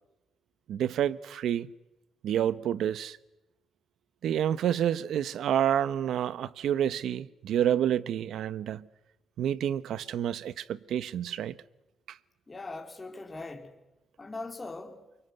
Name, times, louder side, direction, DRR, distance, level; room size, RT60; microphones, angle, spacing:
voice 1, 0.7-1.7 2.2-3.2 4.2-8.8 9.4-11.6 12.1-12.2, right 10 dB, 75° right, 1.0 m, -29 dB
voice 2, 12.5-13.7 14.2-15.0, left 3 dB, 20° left, 3.2 m, -40 dB
28.5 x 24.5 x 8.0 m
cardioid pair, 150°, 0 cm